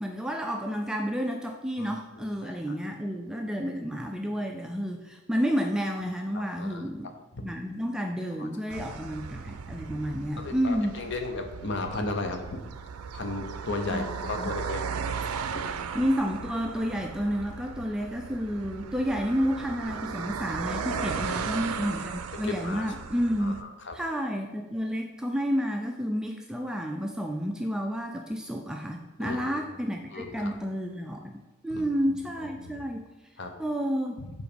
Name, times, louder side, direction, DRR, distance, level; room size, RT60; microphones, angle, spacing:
voice 1, 0.0-7.1 7.4-11.0 13.9-14.5 15.9-23.6 23.9-33.0 33.6-34.2, equal, 5° right, 2 dB, 0.3 m, -30 dB
voice 2, 2.2-2.5 6.3-6.8 8.4-8.5 10.4-12.6 13.1-14.8 20.7-21.5 21.8-22.0 22.4-22.9 23.4-24.0 29.2-29.5 30.1-30.5 31.7-31.9 32.6-32.8 33.4-33.5 34.2-34.3, left 3 dB, 55° left, 5 dB, 0.7 m, -35 dB
sound 1, 8.7-23.6, right 6 dB, 85° right, 0.4 m, -36 dB
4.9 x 3.9 x 5.1 m, 1.1 s
head